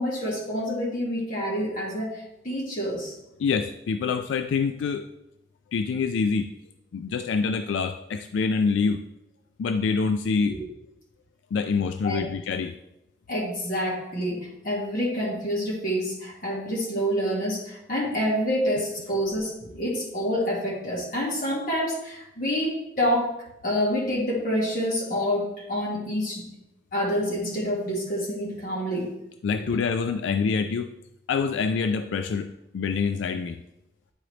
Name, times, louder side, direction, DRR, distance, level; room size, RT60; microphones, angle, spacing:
voice 1, 0.0-3.2 10.5-10.6 12.0-12.3 13.3-23.3 23.6-26.5 26.9-29.1, equal, 45° left, -4 dB, 1.9 m, -27 dB
voice 2, 3.4-5.0 5.7-6.5 6.9-9.0 9.6-10.6 11.5-12.7 29.4-30.9 31.3-32.5 32.7-33.6, left 5 dB, 90° left, 8 dB, 0.3 m, -26 dB
9.8 x 3.9 x 3.2 m, 0.86 s
head